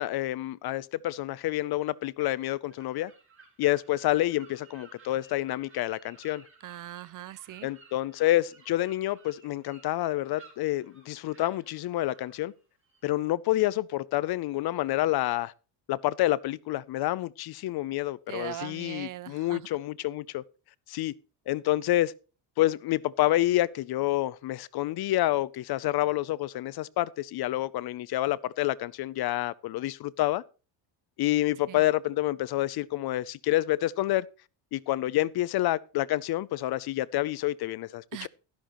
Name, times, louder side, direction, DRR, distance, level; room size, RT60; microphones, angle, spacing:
voice 1, 0.0-3.1 3.6-6.4 7.6-12.5 13.0-15.5 15.9-20.4 20.9-21.1 21.5-22.1 22.6-30.4 31.2-34.3 34.7-38.3, left 15 dB, 55° left, 0.6 m, -28 dB
sound 1, 2.7-13.0, right 4 dB, 25° right, 3.5 m, -57 dB
voice 2, 6.6-7.7 18.3-19.7 31.7-31.8 38.1-38.3, right 14 dB, 45° right, 0.4 m, -40 dB
12.5 x 11.5 x 3.0 m
cardioid pair, 150°, 47 cm